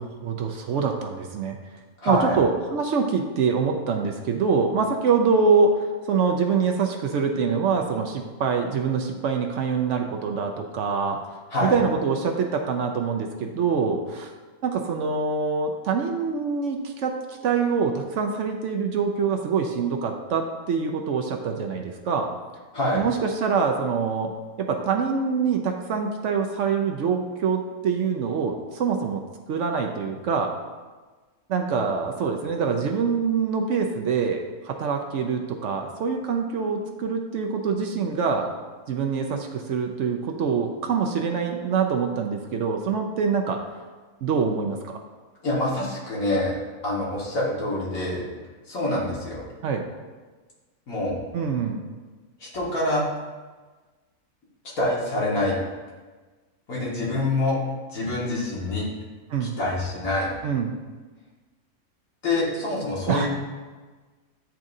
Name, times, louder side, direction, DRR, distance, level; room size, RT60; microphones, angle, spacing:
voice 1, 0.0-1.6 2.0-11.2 11.6-14.3 14.6-22.3 22.9-24.3 24.6-29.2 29.5-30.5 31.5-38.5 38.9-43.7 44.2-45.0 49.6-49.8 51.3-51.8 59.3-59.6 60.4-60.8 63.1-63.3, right 5 dB, 65° right, 3 dB, 0.8 m, -25 dB
voice 2, 2.0-2.4 11.5-11.8 22.7-23.0 45.4-48.2 48.7-49.4 50.9-51.1 52.4-53.0 54.8-55.6 56.7-57.6 57.9-58.9 59.4-60.3 62.2-63.3, left 1 dB, 70° left, -6 dB, 2.0 m, -26 dB
10.0 x 3.6 x 2.6 m, 1.3 s
omnidirectional pair, 1.5 m